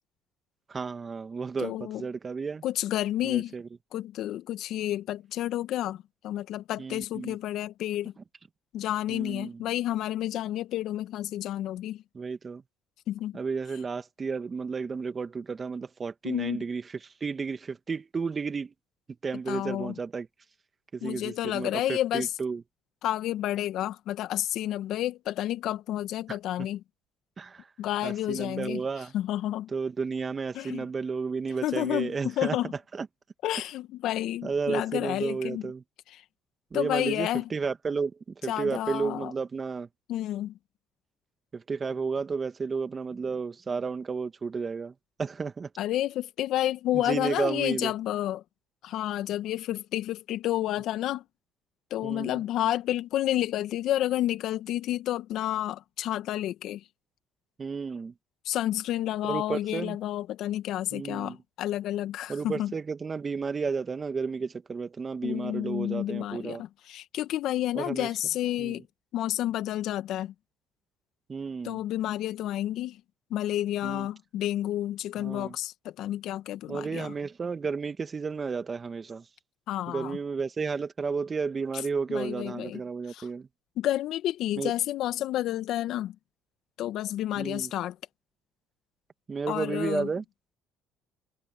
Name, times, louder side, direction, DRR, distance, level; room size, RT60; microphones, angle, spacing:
voice 1, 0.7-2.6 3.2-3.6 6.8-7.4 9.1-9.5 12.2-12.6 13.3-18.7 19.2-20.3 20.9-22.6 26.3-26.4 27.4-27.7 28.0-29.1 29.7-32.6 32.9-33.1 34.4-35.8 36.7-38.1 38.4-39.9 41.5-44.9 45.2-45.7 46.9-47.9 52.0-52.4 57.6-58.1 59.2-60.0 60.9-61.4 62.3-66.6 67.8-68.1 68.6-68.8 71.3-71.8 73.8-74.1 75.2-75.6 76.7-79.2 79.9-83.5 84.6-84.7 87.4-87.7 89.3-90.2, right 5 dB, 35° right, 1.8 m, -32 dB
voice 2, 1.6-2.0 2.6-3.5 3.9-8.1 8.7-12.0 13.1-13.4 16.2-16.6 19.5-20.0 21.0-22.3 23.0-26.8 27.8-28.8 29.1-29.7 30.5-30.9 31.6-32.7 33.4-35.7 36.1-36.2 36.7-37.5 38.5-39.3 40.1-40.6 45.8-48.4 48.8-51.2 51.9-56.8 58.5-62.7 65.2-68.8 69.1-70.3 71.6-73.0 73.3-77.1 79.7-80.2 82.1-82.8 83.1-83.3 83.8-86.2 86.8-88.0 89.5-90.1, left 13 dB, 65° left, 1.8 m, -30 dB
hypercardioid pair, 65°, 0 cm